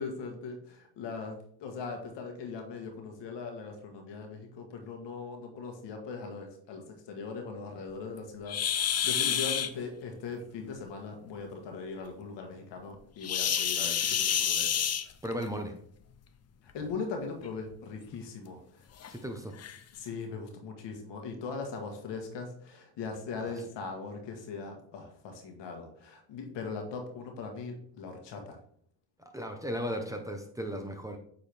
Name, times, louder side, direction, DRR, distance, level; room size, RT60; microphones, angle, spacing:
voice 1, 0.0-14.9 16.7-18.6 19.9-28.6, left 4 dB, 70° left, 3 dB, 1.6 m, -40 dB
sound 1, 8.5-9.7 13.2-15.5 16.7-16.9 17.4-17.5 18.1-18.2 19.0-19.1 19.6-19.8, left 9 dB, 35° left, 0.6 m, -29 dB
voice 2, 15.2-15.7 19.1-19.5 23.4-23.5 29.2-31.2, equal, 5° right, 4 dB, 1.1 m, -36 dB
8.0 x 3.9 x 3.5 m, 0.62 s
supercardioid pair, 70°, 45 cm